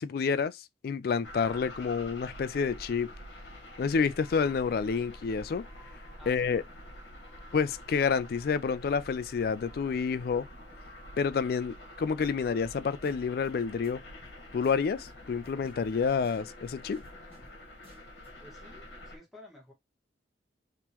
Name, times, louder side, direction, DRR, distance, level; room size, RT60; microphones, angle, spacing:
voice 1, 0.0-3.1 3.8-5.6 6.3-6.6 7.5-10.5 11.2-14.0 14.5-17.0, left 5 dB, 55° left, 0.3 m, -29 dB
sound 1, 1.2-19.2, left 1 dB, 75° left, 1.2 m, -47 dB
voice 2, 6.2-6.7 18.4-19.7, left 2 dB, ahead, 1.5 m, -53 dB
sound 2, 12.2-12.4 12.6-12.8 13.0-13.5 13.8-13.9 14.2-14.4 14.6-15.1 15.4-17.6 17.8-18.3, equal, 30° right, 1.3 m, -56 dB
3.7 x 2.9 x 2.9 m
head